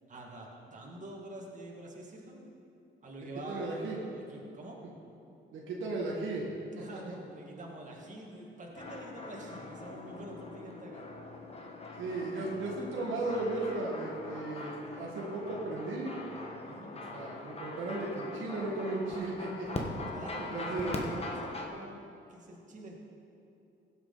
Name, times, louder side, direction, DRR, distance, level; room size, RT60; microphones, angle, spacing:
voice 1, 0.1-2.4 3.0-4.8 6.7-11.0 16.7-16.9 20.1-22.0 22.3-23.0, right 1 dB, 40° right, -2 dB, 2.2 m, -46 dB
voice 2, 3.5-4.0 5.5-6.5 6.8-7.2 12.0-16.1 16.9-19.8 20.5-21.1, right 2 dB, 80° right, -3 dB, 1.8 m, -36 dB
sound 1, 8.8-21.7, left 2 dB, 30° left, 1.4 m, -42 dB
15.5 x 7.9 x 4.1 m, 2.7 s
cardioid pair, 90°, 20 cm